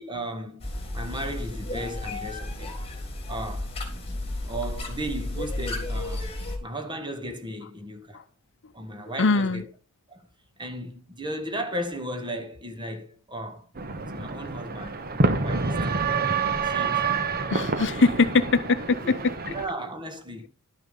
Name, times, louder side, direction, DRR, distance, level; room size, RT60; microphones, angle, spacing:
voice 1, 0.0-2.7 3.3-3.7 4.4-6.3 6.6-8.2 8.7-9.6 10.1-10.3 10.6-13.7 14.0-15.9 16.6-17.3 18.9-20.5, right 1 dB, 20° right, 1.8 m, -35 dB
sound 1, 0.6-6.6, left 1 dB, 25° left, 3.4 m, -33 dB
voice 2, 9.2-9.6 17.5-19.5, left 4 dB, 55° left, 0.8 m, -22 dB
sound 2, 13.8-19.7, right 4 dB, 45° right, 1.1 m, -27 dB
12.0 x 6.9 x 5.4 m
head